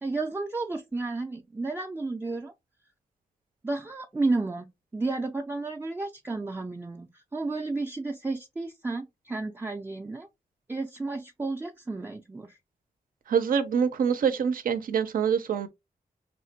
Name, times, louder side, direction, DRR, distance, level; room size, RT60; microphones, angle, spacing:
voice 1, 0.0-2.5 3.6-10.3 10.7-12.6, right 3 dB, 15° right, 0.3 m, -32 dB
voice 2, 13.3-15.7, right 7 dB, 75° right, 0.5 m, -25 dB
3.2 x 2.1 x 2.7 m
cardioid pair, 70°, 15 cm